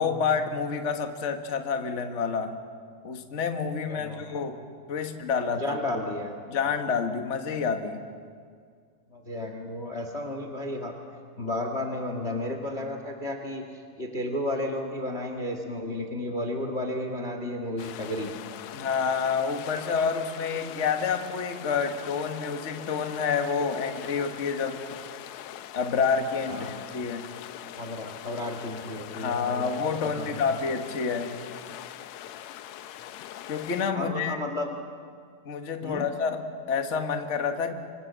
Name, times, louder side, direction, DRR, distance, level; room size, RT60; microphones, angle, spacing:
voice 1, 0.0-2.6 3.0-4.6 4.9-5.8 6.5-8.0 18.7-24.8 25.7-27.3 29.1-31.4 33.5-34.4 35.4-37.7, left 5 dB, 40° left, 6 dB, 1.0 m, -28 dB
voice 2, 3.9-4.4 5.6-6.3 9.1-11.0 11.4-18.3 26.5-26.7 27.8-29.6 30.2-30.4 33.9-34.8 35.8-36.0, left 1 dB, 25° left, 4 dB, 1.7 m, -33 dB
sound 1, 17.8-33.9, left 11 dB, 70° left, 1.8 m, -42 dB
26.0 x 25.5 x 7.5 m, 2.1 s
omnidirectional pair, 3.7 m